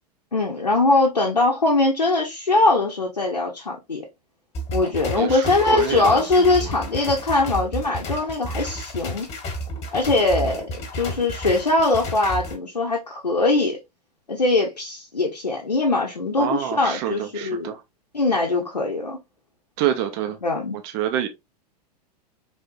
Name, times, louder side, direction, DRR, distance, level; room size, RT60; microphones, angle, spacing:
voice 1, 0.3-4.0 4.7-9.3 9.9-13.8 14.3-17.8 18.1-19.2 20.4-20.8, left 2 dB, 90° left, 0.7 m, -21 dB
sound 1, 4.5-12.5, equal, 30° left, 1.2 m, -31 dB
voice 2, 5.7-6.2 16.4-17.8 19.8-20.4 20.9-21.3, right 11 dB, 40° right, 0.6 m, -26 dB
3.4 x 2.7 x 2.5 m
figure-of-eight pair, 90°, 20 cm